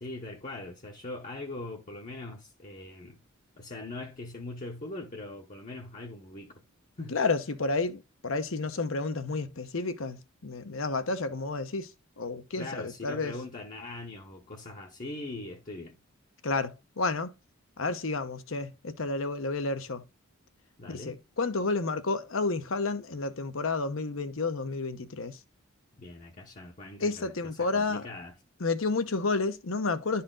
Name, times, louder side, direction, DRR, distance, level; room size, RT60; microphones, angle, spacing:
voice 1, 0.0-3.2 3.6-6.6 7.0-7.2 12.6-16.0 20.8-21.2 26.0-27.3 27.6-28.4, left 2 dB, 40° left, 0.9 m, -41 dB
voice 2, 7.1-11.9 12.2-13.3 16.4-17.3 17.8-20.0 20.9-25.4 27.0-28.1 28.6-30.2, left 3 dB, 70° left, 0.9 m, -31 dB
11.0 x 4.2 x 3.8 m
head